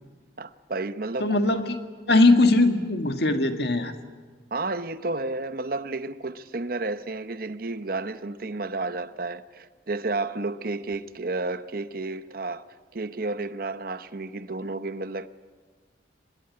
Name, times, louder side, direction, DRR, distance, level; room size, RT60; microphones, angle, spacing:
voice 1, 0.4-1.4 4.5-12.6 12.9-15.3, right 3 dB, 50° right, 0.8 m, -31 dB
voice 2, 1.2-1.8 2.1-3.9, left 2 dB, 60° left, 1.9 m, -20 dB
25.0 x 20.0 x 9.6 m
head